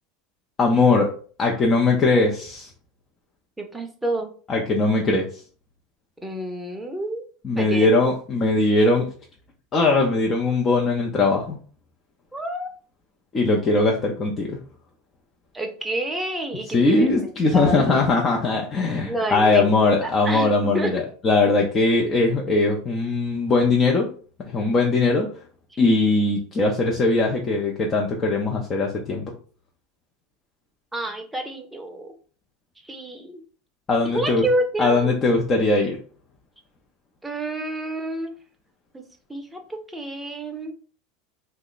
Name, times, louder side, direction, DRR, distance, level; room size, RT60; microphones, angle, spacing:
voice 1, 0.6-1.1 1.4-2.7 4.5-5.3 7.4-9.1 9.7-11.6 13.3-14.6 16.7-24.1 24.4-25.3 25.8-29.3 33.9-34.5 34.8-36.0, left 3 dB, 30° left, 0 dB, 0.6 m, -20 dB
voice 2, 3.6-4.3 6.2-7.2 7.5-7.9 12.3-12.7 15.5-18.1 19.1-19.7 20.0-21.0 30.9-32.1 32.8-33.4 34.0-35.1 37.2-38.3 38.9-40.7, right 1 dB, 5° right, 3 dB, 0.7 m, -29 dB
2.9 x 2.1 x 3.9 m, 0.42 s
supercardioid pair, 110°, 0 cm